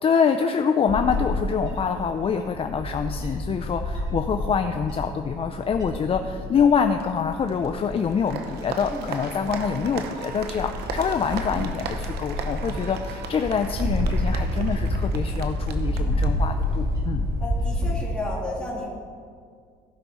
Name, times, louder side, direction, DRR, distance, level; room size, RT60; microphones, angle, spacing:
voice 1, 0.0-17.2, left 6 dB, 35° left, 6 dB, 0.4 m, -25 dB
Bird / Wind, 0.9-17.9, left 1 dB, 25° right, 2.7 m, -29 dB
Applause, 7.0-17.1, right 5 dB, 75° right, 0.9 m, -38 dB
voice 2, 17.4-18.9, left 2 dB, 5° left, -5 dB, 2.7 m, -32 dB
14.5 x 6.0 x 4.2 m, 2.1 s
cardioid pair, 110°, 17 cm